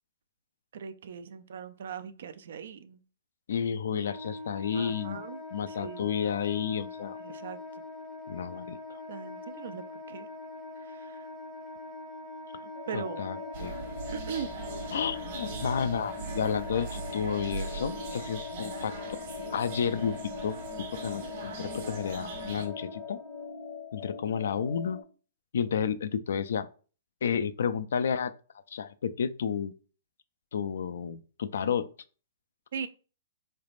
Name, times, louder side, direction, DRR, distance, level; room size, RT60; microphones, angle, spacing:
voice 1, 0.7-3.0 4.7-5.4 5.7-6.1 7.2-7.8 9.1-10.3 10.8-11.3 12.9-13.3 14.1-14.5 32.7-32.9, right 7 dB, 70° right, 0.4 m, -40 dB
voice 2, 3.5-5.2 5.5-7.2 8.3-9.0 12.9-13.7 14.9-19.0 19.5-20.2 20.4-20.6 21.0-23.2 23.9-25.0 25.5-26.7 27.2-28.3 28.7-29.7 30.5-31.9, left 7 dB, 75° left, 0.3 m, -31 dB
Wind instrument woodwind instrument, 4.0-23.5, left 2 dB, ahead, 0.6 m, -43 dB
sound 1, 12.7-25.0, left 6 dB, 45° left, 0.7 m, -42 dB
sound 2, 13.5-22.7, right 4 dB, 50° right, 1.3 m, -41 dB
3.9 x 3.3 x 2.5 m
hypercardioid pair, 155°, 0 cm